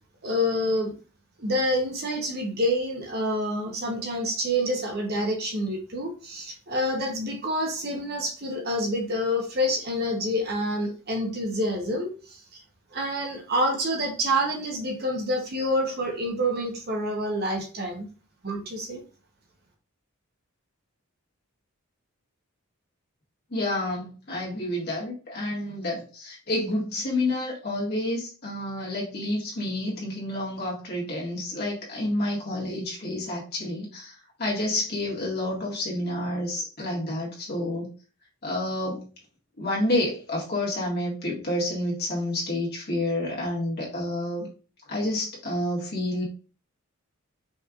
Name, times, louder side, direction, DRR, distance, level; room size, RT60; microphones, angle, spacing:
voice 1, 0.2-0.9 1.4-12.6 12.9-18.1 18.4-19.0, equal, 45° right, 1 dB, 0.9 m, -27 dB
voice 2, 23.5-34.1 34.4-37.9 38.4-39.1 39.6-44.5 44.9-46.2, left 1 dB, 45° left, -4 dB, 1.7 m, -29 dB
5.4 x 3.2 x 2.4 m, 0.37 s
head